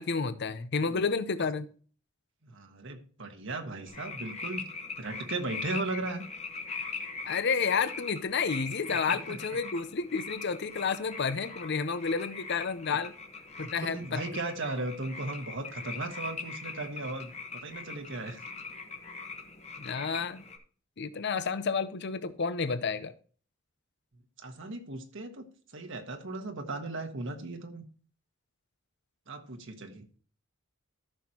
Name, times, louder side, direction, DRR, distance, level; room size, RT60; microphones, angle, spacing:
voice 1, 0.0-1.7 7.2-13.1 13.6-14.2 19.8-20.4 21.0-23.1, left 5 dB, 55° left, 0.6 m, -30 dB
voice 2, 2.4-4.6 5.0-6.2 8.9-9.4 13.6-18.4 24.4-25.4 25.7-27.8 29.3-30.2, right 2 dB, 60° right, 1.4 m, -37 dB
sound 1, 3.9-20.6, left 4 dB, 30° left, 1.2 m, -41 dB
14.0 x 6.1 x 2.9 m
head